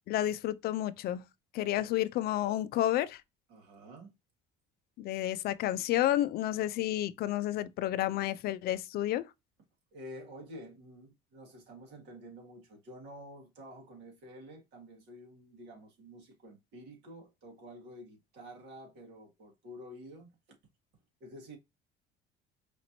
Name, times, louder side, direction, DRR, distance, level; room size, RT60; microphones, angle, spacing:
voice 1, 0.1-1.2 1.5-3.2 5.0-9.3, left 13 dB, 55° left, 0.4 m, -30 dB
voice 2, 3.5-4.1 9.9-20.3 21.2-21.6, equal, 65° right, 2.1 m, -49 dB
5.0 x 3.0 x 2.6 m
cardioid pair, 145°, 19 cm